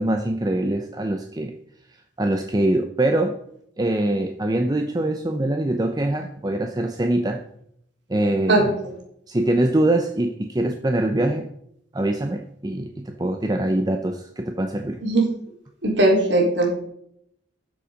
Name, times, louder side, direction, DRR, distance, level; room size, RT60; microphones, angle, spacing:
voice 1, 0.0-1.5 2.2-3.4 3.8-7.4 8.1-8.7 9.3-11.5 11.9-15.0, right 1 dB, 20° right, 4 dB, 0.7 m, -23 dB
voice 2, 15.8-16.7, right 2 dB, 65° right, -1 dB, 4.0 m, -18 dB
13.0 x 7.0 x 5.1 m, 0.73 s
head